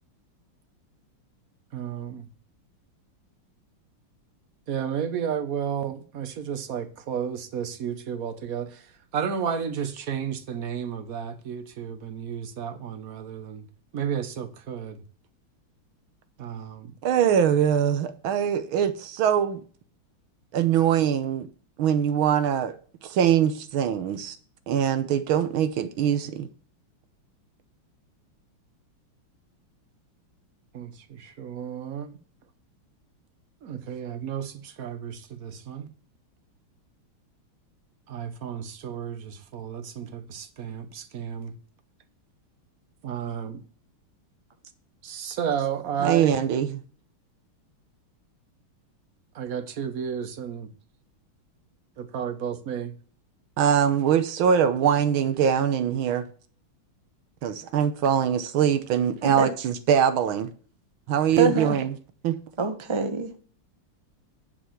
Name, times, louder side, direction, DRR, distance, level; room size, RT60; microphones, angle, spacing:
voice 1, 1.7-2.3 4.7-8.9 9.1-13.6 13.9-15.0 16.4-16.9 30.7-32.2 33.6-35.9 38.1-41.5 43.0-43.6 45.0-46.4 49.3-50.7 52.1-52.9, right 8 dB, 50° right, 1.3 m, -32 dB
voice 2, 17.0-19.6 20.5-21.5 21.8-22.8 23.0-24.4 24.7-26.5 46.0-46.8 53.6-56.2 57.4-60.5 61.1-61.9 62.2-62.4, right 8 dB, 75° right, 1.7 m, -23 dB
voice 3, 61.4-61.8 62.6-63.4, right 4 dB, 25° right, 0.6 m, -25 dB
10.5 x 4.7 x 7.0 m
omnidirectional pair, 2.3 m